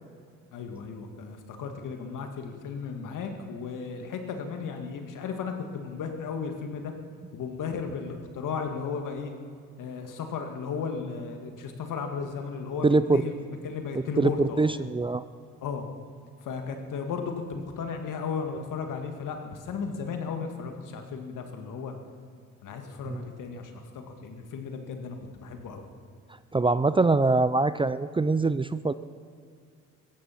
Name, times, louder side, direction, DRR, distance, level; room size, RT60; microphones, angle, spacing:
voice 1, 0.5-6.9 7.3-9.3 9.8-13.3 13.6-14.7 15.6-15.9 16.4-21.9 22.6-25.9, left 5 dB, 75° left, 5 dB, 2.1 m, -35 dB
voice 2, 12.8-13.2 14.2-15.2 23.1-23.2 26.5-28.9, right 3 dB, 15° right, 14 dB, 0.4 m, -23 dB
17.0 x 14.0 x 5.9 m, 2.2 s
cardioid pair, 80°, 32 cm